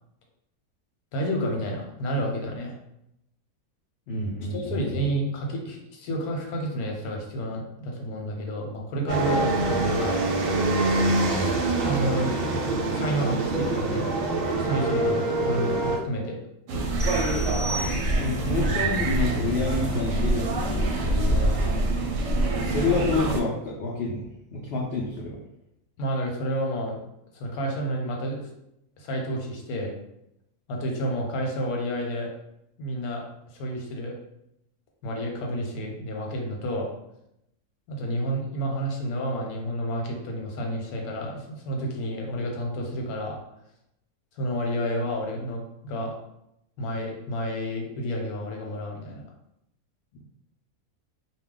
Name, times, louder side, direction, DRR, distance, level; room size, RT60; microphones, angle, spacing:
voice 1, 1.1-2.7 4.5-10.4 11.8-12.3 12.9-14.1 14.5-16.4 21.3-21.6 26.0-27.0 27.3-28.5 29.0-29.9 30.7-32.3 32.8-33.2 33.5-34.2 35.0-36.9 37.9-43.4 44.4-46.1 46.8-49.2, equal, 85° left, 0 dB, 1.2 m, -30 dB
voice 2, 4.1-5.1 18.2-21.1 22.5-24.3 24.5-25.4, left 2 dB, 70° left, -3 dB, 0.6 m, -28 dB
sound 1, 9.1-16.0, right 2 dB, 85° right, 0.5 m, -25 dB
sound 2, 16.7-23.4, right 1 dB, 70° right, 0.8 m, -25 dB
sound 3, 17.0-18.5, right 1 dB, 25° right, 0.7 m, -36 dB
2.3 x 2.2 x 3.6 m, 0.81 s
omnidirectional pair, 1.5 m